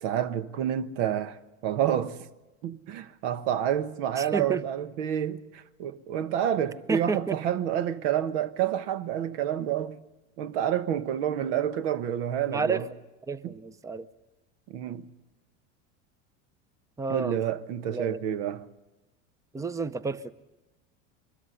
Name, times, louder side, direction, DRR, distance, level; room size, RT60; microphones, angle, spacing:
voice 1, 0.0-2.2 2.6-10.0 10.4-12.9 13.4-13.5 14.7-15.1 17.1-18.7, right 10 dB, 70° right, 1.2 m, -29 dB
voice 2, 4.2-4.6 6.9-7.4 12.5-12.8 13.3-14.1 17.0-17.3 17.9-18.2 19.5-20.3, right 4 dB, 10° right, 0.6 m, -30 dB
23.5 x 13.5 x 9.9 m
hypercardioid pair, 95°, 37 cm